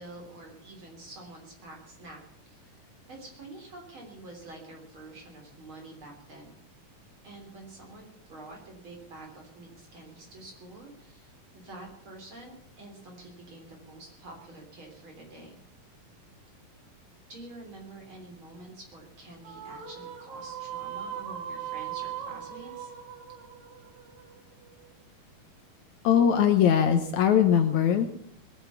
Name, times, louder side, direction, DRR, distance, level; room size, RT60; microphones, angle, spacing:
voice 1, 0.0-2.2 2.5-6.5 7.2-15.6 17.3-22.9, right 2 dB, 40° right, 1 dB, 4.0 m, -47 dB
sound 1, 19.4-24.9, right 9 dB, 85° right, 3.6 m, -39 dB
voice 2, 26.0-28.1, left 8 dB, 70° left, 7 dB, 2.1 m, -21 dB
21.5 x 8.0 x 6.9 m, 0.68 s
omnidirectional pair, 3.9 m